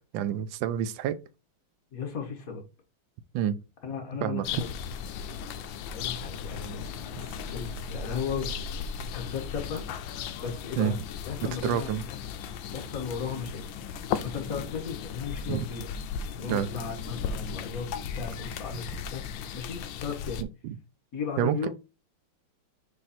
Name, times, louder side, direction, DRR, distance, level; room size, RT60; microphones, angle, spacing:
voice 1, 0.1-1.2 3.3-3.6 4.2-4.6 10.8-11.0 11.6-12.0 15.5-15.7 16.5-16.7 20.4-20.8 21.4-21.7, right 10 dB, 75° right, 1.2 m, -28 dB
voice 2, 1.9-2.6 3.8-4.7 5.9-6.8 7.5-8.5 9.1-9.8 10.4-10.9 11.3-12.2 12.7-13.6 14.2-15.9 16.4-19.3 19.5-20.4 21.1-21.7, left 6 dB, 45° left, 1.7 m, -35 dB
sound 1, 4.4-20.4, left 7 dB, 70° left, 1.2 m, -36 dB
6.7 x 3.3 x 4.3 m
omnidirectional pair, 2.4 m